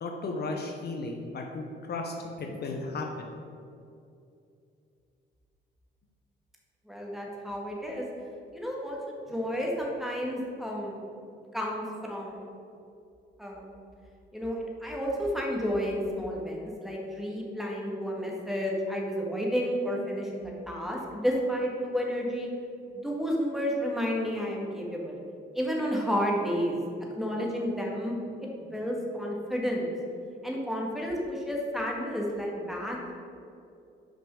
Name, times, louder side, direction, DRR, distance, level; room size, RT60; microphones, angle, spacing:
voice 1, 0.0-3.3, left 3 dB, 55° left, 2 dB, 0.9 m, -35 dB
voice 2, 6.9-8.1 8.5-9.0 9.3-11.0 11.5-12.5 13.4-13.8 14.3-22.5 23.0-25.2 25.5-26.8 27.2-28.1 28.7-29.9 30.4-33.0, equal, ahead, -2 dB, 1.9 m, -31 dB
6.4 x 5.2 x 6.2 m, 2.6 s
cardioid pair, 90°, 20 cm